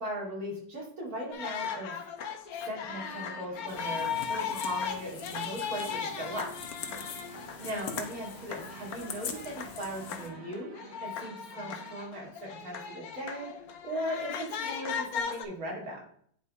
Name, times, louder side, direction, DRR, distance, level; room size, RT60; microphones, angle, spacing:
voice 1, 0.0-2.1 2.5-6.5 7.2-10.7 11.0-13.5 13.8-16.0, equal, 50° right, -3 dB, 2.6 m, -38 dB
sound 1, 1.3-15.5, left 7 dB, 60° left, 1.1 m, -37 dB
sound 2, 2.9-12.0, right 8 dB, 85° right, 1.4 m, -52 dB
sound 3, 3.7-10.3, left 7 dB, 75° left, 1.5 m, -43 dB
9.3 x 3.5 x 4.1 m, 0.63 s
omnidirectional pair, 2.0 m